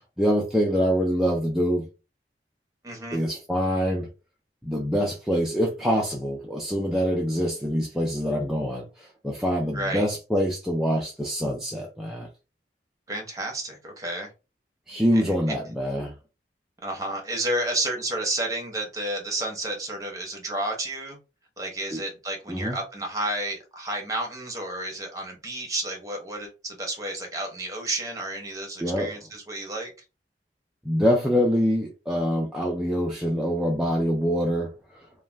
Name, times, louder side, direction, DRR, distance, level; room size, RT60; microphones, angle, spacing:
voice 1, 0.2-1.9 3.1-4.1 4.6-12.3 14.9-16.1 21.9-22.0 22.5-22.8 28.8-29.1 30.8-34.7, equal, ahead, 0.4 m, -25 dB
voice 2, 2.8-3.2 9.7-10.0 13.1-14.3 15.1-15.5 16.8-21.2 21.6-29.9, right 1 dB, 20° right, 0.8 m, -31 dB
2.4 x 2.2 x 3.2 m
head